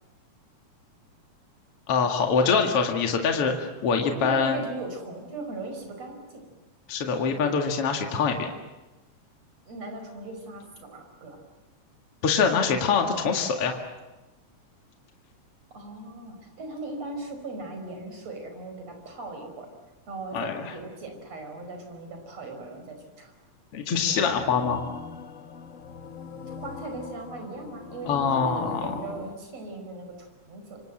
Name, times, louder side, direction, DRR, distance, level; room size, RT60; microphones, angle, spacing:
voice 1, 1.9-4.6 6.9-8.5 12.2-13.8 20.3-20.7 23.7-24.8 28.0-29.0, left 5 dB, 55° left, 3 dB, 2.8 m, -24 dB
voice 2, 4.1-6.4 9.7-11.4 15.7-19.7 20.1-23.3 26.5-30.8, right 3 dB, 60° right, 4 dB, 6.2 m, -38 dB
sound 1, 24.0-29.4, left 6 dB, 75° left, 0.7 m, -41 dB
27.5 x 25.5 x 7.7 m, 1.1 s
omnidirectional pair, 3.4 m